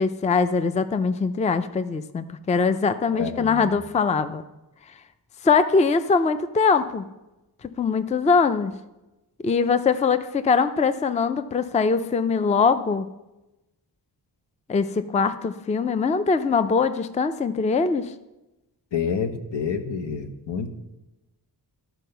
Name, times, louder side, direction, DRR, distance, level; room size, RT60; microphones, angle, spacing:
voice 1, 0.0-4.4 5.4-7.0 7.6-8.7 9.4-13.1 14.7-18.1, left 5 dB, 20° left, 12 dB, 0.3 m, -22 dB
voice 2, 3.1-3.8 18.9-20.7, left 6 dB, 90° left, 7 dB, 1.1 m, -28 dB
12.5 x 4.6 x 6.7 m, 0.99 s
wide cardioid pair, 155°, 42 cm